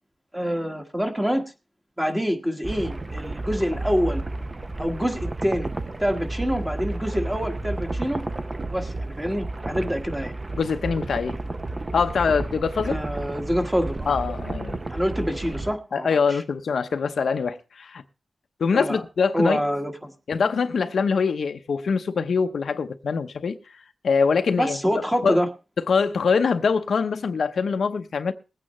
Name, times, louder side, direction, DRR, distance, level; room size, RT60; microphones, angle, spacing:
voice 1, 0.3-1.4 2.0-4.2 4.8-5.7 6.0-8.2 8.7-10.3 12.8-14.1 14.9-16.4 18.7-19.0 19.3-20.1 24.6-25.5, equal, 10° right, 1.5 m, -26 dB
sound 1, 2.6-15.7, right 2 dB, 30° right, 0.6 m, -32 dB
voice 2, 10.6-11.4 11.9-13.0 14.1-14.8 15.9-18.0 18.6-19.6 20.3-23.6 24.0-24.8 25.2-25.4 25.9-28.3, left 5 dB, 85° left, 0.7 m, -23 dB
21.0 x 8.8 x 3.1 m
wide cardioid pair, 125°, 0 cm